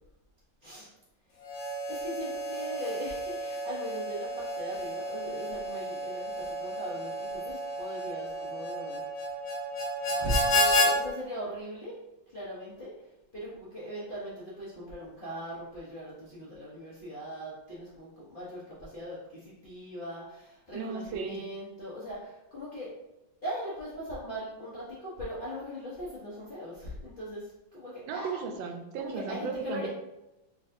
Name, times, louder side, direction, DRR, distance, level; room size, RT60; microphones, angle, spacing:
Harmonica, 1.4-10.9, equal, 60° left, 1.1 m, -31 dB
voice 1, 1.9-9.0 10.1-11.9 12.3-12.9 13.3-22.9 23.4-28.4 29.0-29.9, equal, 40° left, -10 dB, 0.8 m, -39 dB
voice 2, 20.7-21.4 28.1-29.9, right 5 dB, 85° right, 5 dB, 1.3 m, -35 dB
4.1 x 3.2 x 2.5 m, 0.94 s
omnidirectional pair, 2.1 m